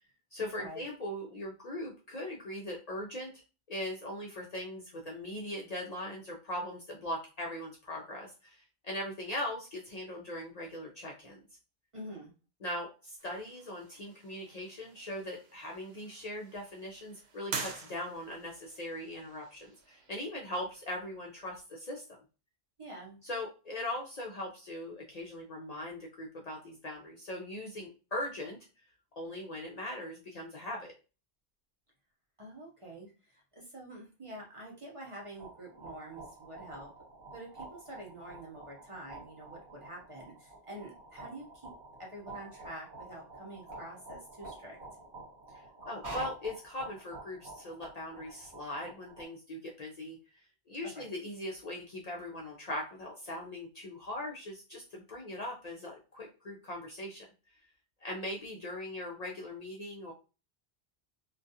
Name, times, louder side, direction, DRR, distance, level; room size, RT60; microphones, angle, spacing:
voice 1, 0.3-3.4 3.7-11.4 12.6-22.2 23.2-28.6 29.2-30.9 45.5-50.2 50.7-57.3 58.0-60.1, left 1 dB, 55° left, -2 dB, 0.5 m, -40 dB
voice 2, 11.9-12.3 22.8-23.2 32.4-36.9 37.3-41.7 42.0-44.8 50.8-51.1, right 1 dB, 35° right, -2 dB, 0.6 m, -47 dB
sound 1, 13.2-21.6, right 5 dB, 85° right, 0.8 m, -47 dB
sound 2, 35.2-49.3, right 2 dB, 55° right, 1.2 m, -48 dB
2.3 x 2.3 x 2.6 m, 0.33 s
omnidirectional pair, 1.0 m